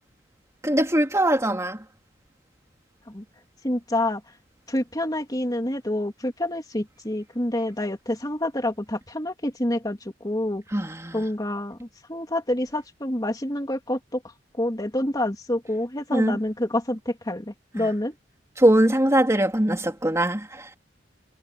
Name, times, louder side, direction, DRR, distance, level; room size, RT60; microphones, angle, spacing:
voice 1, 0.6-1.8 10.7-11.2 16.1-16.4 17.8-17.9 18.6-20.7, right 1 dB, 15° right, 3.5 m, -21 dB
voice 2, 3.6-4.2 4.7-10.6 11.1-14.2 14.6-18.1, left 1 dB, 20° left, 3.1 m, -27 dB
head